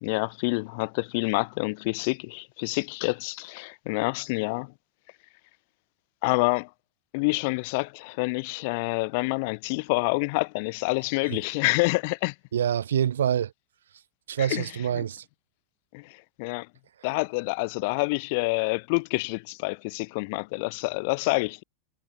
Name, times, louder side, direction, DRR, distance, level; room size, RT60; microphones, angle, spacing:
voice 1, 0.0-4.7 6.2-6.7 7.1-12.3 14.4-14.7 15.0-15.1 15.9-16.7 17.0-21.6, left 29 dB, 60° left, 0.4 m, -27 dB
voice 2, 12.5-13.5 14.3-15.2, right 9 dB, 90° right, 0.4 m, -26 dB
hypercardioid pair, 115°, 0 cm